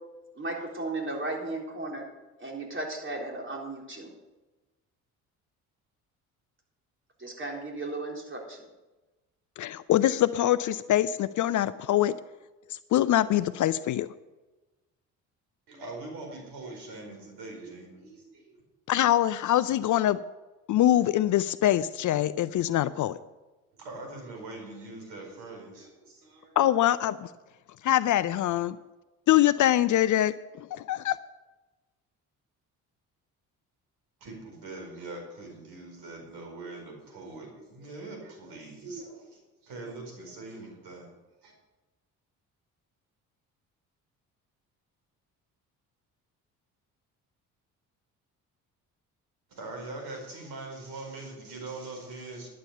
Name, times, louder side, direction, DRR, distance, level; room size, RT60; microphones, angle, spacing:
voice 1, 0.4-2.1 2.4-4.1 7.2-8.6, right 2 dB, 25° right, 0 dB, 4.0 m, -35 dB
voice 2, 9.6-12.1 12.9-14.1 18.9-20.2 20.7-23.2 26.6-27.3 27.8-28.8 29.3-31.2, left 13 dB, 45° left, 16 dB, 0.5 m, -24 dB
voice 3, 15.7-18.6 23.7-26.5 34.2-41.1 41.4-41.5 49.5-52.5, right 2 dB, 60° right, 1 dB, 4.7 m, -42 dB
11.5 x 8.7 x 6.7 m, 1.1 s
hypercardioid pair, 50°, 44 cm